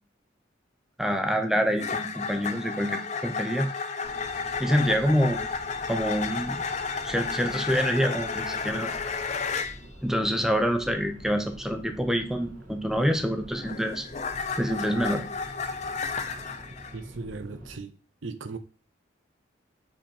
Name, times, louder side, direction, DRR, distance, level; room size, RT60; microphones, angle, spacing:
voice 1, 1.0-3.7 4.6-5.4 5.9-6.6 7.0-8.9 10.0-14.0 14.6-15.2, equal, 5° right, 0.7 m, -26 dB
sound 1, 1.8-9.8 13.1-17.0, left 5 dB, 35° left, 0.6 m, -32 dB
sound 2, 4.0-17.8, equal, 45° right, 1.9 m, -47 dB
voice 2, 16.9-17.9 18.2-18.6, right 3 dB, 85° right, 0.8 m, -37 dB
5.4 x 5.0 x 4.4 m
head